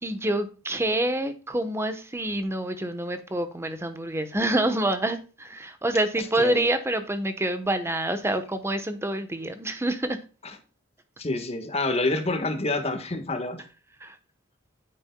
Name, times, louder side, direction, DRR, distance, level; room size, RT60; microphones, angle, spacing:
voice 1, 0.0-10.2 14.0-14.2, right 1 dB, 15° right, 1.0 m, -27 dB
voice 2, 6.4-6.7 11.2-13.6, left 2 dB, 30° left, 1.4 m, -27 dB
9.6 x 8.3 x 2.2 m
head